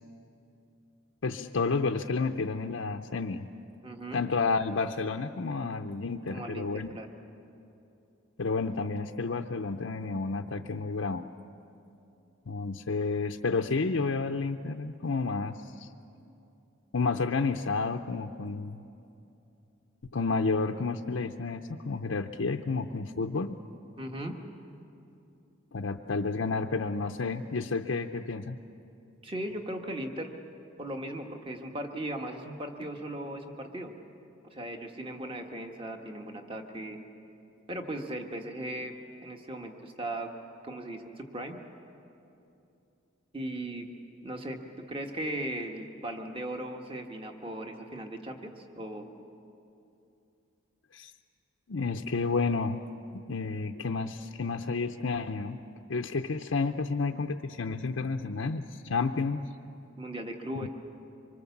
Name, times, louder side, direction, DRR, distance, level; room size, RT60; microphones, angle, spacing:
voice 1, 1.2-3.5 4.1-6.9 8.4-11.3 12.5-15.9 16.9-18.8 20.1-23.6 25.7-28.6 50.9-51.1 51.7-52.8 53.1-55.6 55.9-59.4 60.6-60.7, left 4 dB, 70° left, 3 dB, 0.6 m, -31 dB
voice 2, 3.8-4.2 6.3-7.1 24.0-24.3 29.2-30.3 30.8-33.9 34.5-37.0 37.7-38.9 39.2-40.3 40.6-41.6 43.3-43.9 44.2-44.6 44.9-49.1 60.0-60.7, right 1 dB, 25° right, 3 dB, 1.4 m, -37 dB
25.5 x 24.0 x 7.2 m, 2.8 s
head